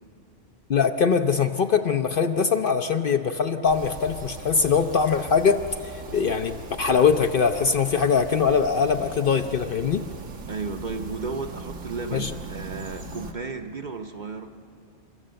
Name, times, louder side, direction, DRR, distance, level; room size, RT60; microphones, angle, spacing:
voice 1, 0.7-5.6 6.1-10.0 12.1-12.3, left 6 dB, 55° left, 7 dB, 0.7 m, -22 dB
sound 1, 3.6-13.3, right 3 dB, 85° right, 1.6 m, -40 dB
voice 2, 10.5-14.5, right 4 dB, 45° right, 5 dB, 0.8 m, -34 dB
29.5 x 13.5 x 7.7 m, 2.7 s
omnidirectional pair, 1.3 m